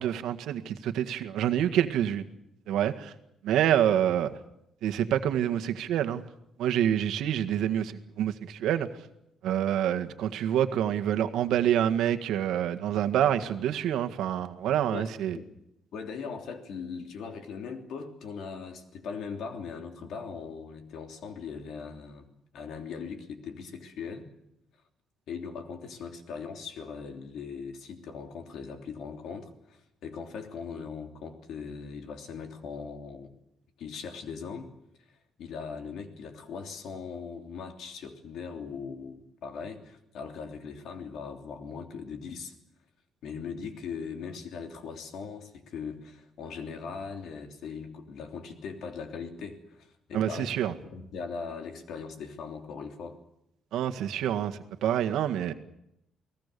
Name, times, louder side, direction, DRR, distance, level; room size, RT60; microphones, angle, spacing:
voice 1, 0.0-2.3 2.7-3.1 3.4-4.3 4.8-6.2 6.6-8.9 9.4-15.4 50.1-50.7 53.7-55.5, right 10 dB, 90° right, 8 dB, 1.8 m, -27 dB
voice 2, 14.9-15.5 15.9-22.3 22.5-24.3 25.3-33.3 33.8-34.7 35.1-42.5 43.2-53.2, left 5 dB, 60° left, 5 dB, 3.2 m, -40 dB
29.0 x 19.5 x 6.9 m, 0.82 s
cardioid pair, 180°, 0 cm